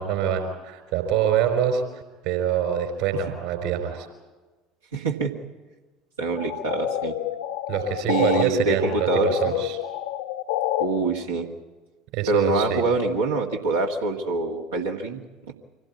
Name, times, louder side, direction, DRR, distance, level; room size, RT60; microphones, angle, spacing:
voice 1, 0.0-4.1 7.7-9.8 12.1-12.8, right 8 dB, 55° right, 6 dB, 4.8 m, -25 dB
voice 2, 4.9-5.3 6.2-7.1 8.1-9.4 10.8-11.5 12.3-15.2, right 3 dB, 75° right, -1 dB, 1.8 m, -25 dB
sound 1, 6.4-8.4 8.8-10.9, left 13 dB, 60° left, 1.0 m, -28 dB
25.5 x 17.0 x 8.4 m, 1.2 s
figure-of-eight pair, 65°, 0 cm